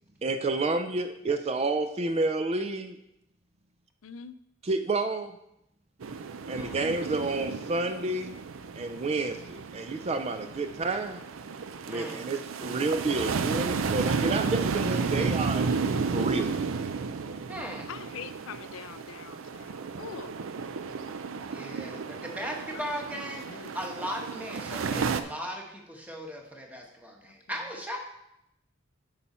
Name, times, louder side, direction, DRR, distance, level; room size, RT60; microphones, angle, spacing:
voice 1, 0.2-3.0 4.6-5.4 6.5-8.4 8.8-11.2 11.9-15.6 16.1-16.5, right 3 dB, 30° right, 8 dB, 0.4 m, -30 dB
voice 2, 4.0-4.4 16.1-16.5 17.9-20.3 22.4-22.5 22.7-22.9 23.1-23.7, left 6 dB, 85° left, 12 dB, 0.4 m, -44 dB
sound 1, 6.0-25.2, right 5 dB, 85° right, 0.5 m, -33 dB
voice 3, 6.6-6.9 11.9-12.2 17.5-17.9 21.5-28.0, equal, 10° right, 1 dB, 1.1 m, -38 dB
8.8 x 5.5 x 4.3 m, 0.82 s
head